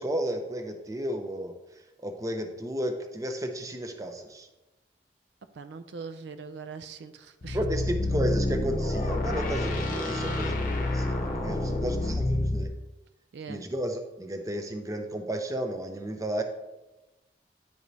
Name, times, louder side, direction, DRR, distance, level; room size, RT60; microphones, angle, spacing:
voice 1, 0.0-1.5 2.0-4.5 7.5-12.7 13.5-16.4, right 1 dB, 20° right, 5 dB, 0.6 m, -33 dB
voice 2, 5.5-7.6 11.4-11.8 13.3-13.6, right 5 dB, 70° right, 10 dB, 0.4 m, -42 dB
sound 1, 7.4-12.7, left 1 dB, 45° left, 0.8 m, -28 dB
10.0 x 4.8 x 2.7 m, 1.0 s
head